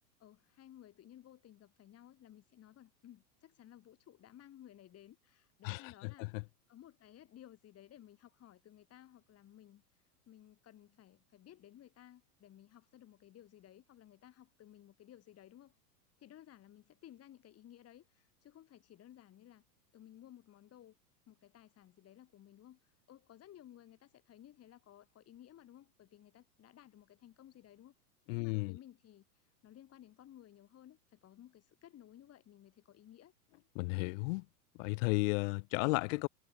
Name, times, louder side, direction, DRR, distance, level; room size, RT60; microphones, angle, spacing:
voice 1, 0.2-15.8 16.2-19.6 19.9-21.0 21.3-27.9 28.4-33.3, left 12 dB, 30° left, 5.6 m, -58 dB
voice 2, 5.6-6.4 28.3-28.8 33.7-34.4 34.8-36.3, left 29 dB, 50° left, 1.6 m, -34 dB
hypercardioid pair, 125°, 48 cm